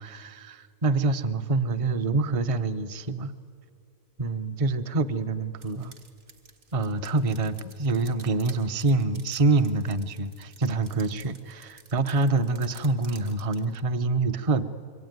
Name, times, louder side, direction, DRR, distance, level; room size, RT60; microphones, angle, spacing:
voice 1, 0.0-3.4 4.2-5.9 6.7-14.6, right 3 dB, 30° right, 12 dB, 0.6 m, -26 dB
sound 1, 5.6-13.8, right 4 dB, 60° right, 2.0 m, -52 dB
27.0 x 23.0 x 9.4 m, 2.3 s
omnidirectional pair, 1.6 m